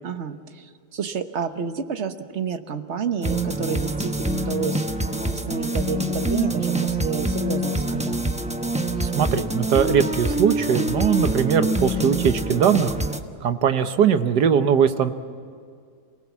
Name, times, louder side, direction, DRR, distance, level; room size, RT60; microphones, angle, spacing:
voice 1, 0.0-4.9 5.3-8.3, right 6 dB, 45° right, 9 dB, 1.2 m, -30 dB
sound 1, 3.2-13.2, right 1 dB, 5° right, 0.7 m, -25 dB
voice 2, 9.0-12.9 13.4-15.1, right 7 dB, 85° right, 10 dB, 1.6 m, -20 dB
28.0 x 19.0 x 7.3 m, 2.2 s
omnidirectional pair, 1.7 m